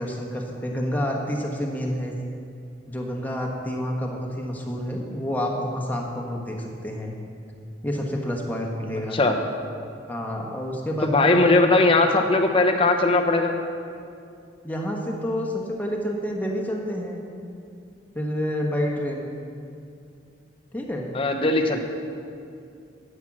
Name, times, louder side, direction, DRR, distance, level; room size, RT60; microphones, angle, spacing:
voice 1, 0.0-2.2 2.9-7.1 7.8-9.2 10.1-11.5 14.6-17.2 18.1-19.3 20.7-21.1, equal, 10° left, 0 dB, 1.3 m, -28 dB
voice 2, 11.0-13.6 21.1-21.8, left 2 dB, 30° left, 4 dB, 0.8 m, -19 dB
10.5 x 9.1 x 6.1 m, 2.5 s
head